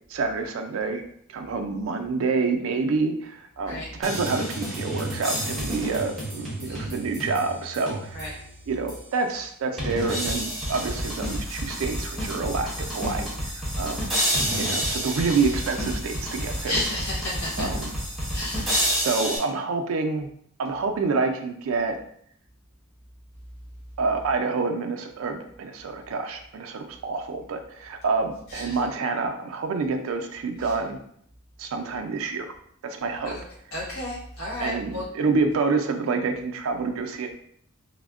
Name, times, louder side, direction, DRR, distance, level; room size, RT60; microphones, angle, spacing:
voice 1, 0.1-1.0 1.3-8.4 8.7-14.1 14.6-16.8 17.6-17.9 18.7-20.3 20.6-22.0 24.0-31.0 31.6-32.5 32.8-33.3 34.6-37.3, right 4 dB, 75° right, 5 dB, 0.4 m, -28 dB
sound 1, 4.0-8.4 8.9-9.0 9.8-19.4, equal, ahead, 0.7 m, -29 dB
voice 2, 16.6-17.7 18.3-18.9 28.5-28.8 33.2-33.4 33.7-35.0, left 1 dB, 85° left, -6 dB, 1.4 m, -32 dB
3.4 x 2.1 x 2.3 m, 0.66 s
head